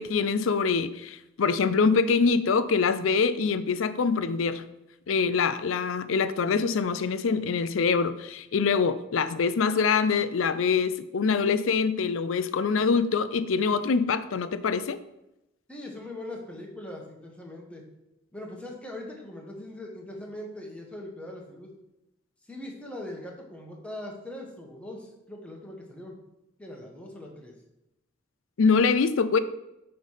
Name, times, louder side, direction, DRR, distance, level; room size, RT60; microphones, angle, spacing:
voice 1, 0.0-4.6 5.1-15.0 28.6-29.4, left 5 dB, 75° left, 13 dB, 0.5 m, -24 dB
voice 2, 15.7-17.8 18.3-21.7 22.5-26.2 26.6-27.5, left 1 dB, 5° left, -1 dB, 1.2 m, -41 dB
8.0 x 3.3 x 5.6 m, 0.91 s
head